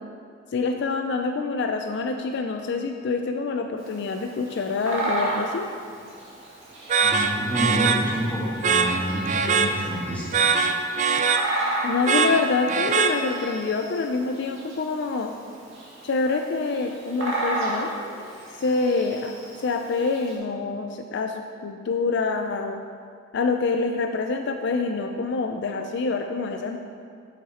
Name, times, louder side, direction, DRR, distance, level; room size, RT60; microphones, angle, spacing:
voice 1, 0.5-5.7 11.8-15.3 16.0-17.9 18.6-19.3 19.6-22.8 23.3-26.8, left 4 dB, 65° left, 4 dB, 0.4 m, -26 dB
Bird vocalization bird call bird song, 3.8-20.3, right 2 dB, 85° right, 1.9 m, -34 dB
sound 1, 6.9-13.6, right 5 dB, 40° right, 0.4 m, -23 dB
voice 2, 7.0-10.3, equal, 10° left, -8 dB, 2.0 m, -28 dB
7.3 x 7.1 x 4.2 m, 2.2 s
head